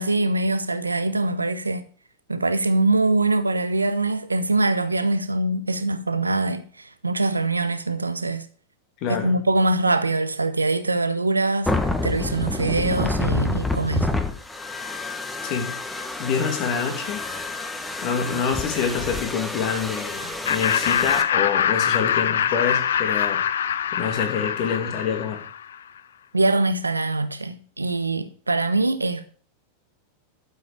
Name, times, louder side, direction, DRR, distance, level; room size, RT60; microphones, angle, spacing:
voice 1, 0.0-1.8 2.3-8.5 9.1-11.7 12.0-14.1 26.3-29.3, right 2 dB, 80° right, 1.0 m, -23 dB
voice 2, 9.0-9.3 15.4-17.3 18.0-23.4 23.9-25.4, left 6 dB, 40° left, 2.5 m, -27 dB
sound 1, 11.7-21.2, left 2 dB, 5° left, 1.4 m, -28 dB
Laughter, 20.5-25.7, left 9 dB, 65° left, 0.6 m, -24 dB
12.5 x 7.3 x 5.0 m
figure-of-eight pair, 90°, 0 cm